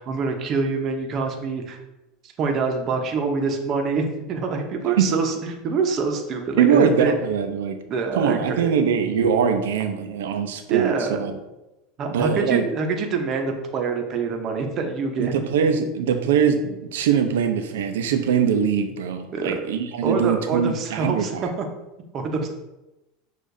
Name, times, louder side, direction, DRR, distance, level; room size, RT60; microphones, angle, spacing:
voice 1, 0.0-1.8 2.4-7.2 7.9-8.7 10.7-11.3 12.0-15.4 19.3-19.5 20.0-21.3 21.6-21.7 22.1-22.5, right 4 dB, 40° right, 4 dB, 0.7 m, -25 dB
voice 2, 6.6-7.8 8.2-11.3 12.1-12.7 15.2-21.4, right 7 dB, 85° right, 7 dB, 0.5 m, -22 dB
6.5 x 2.4 x 2.6 m, 0.98 s
supercardioid pair, 115°, 0 cm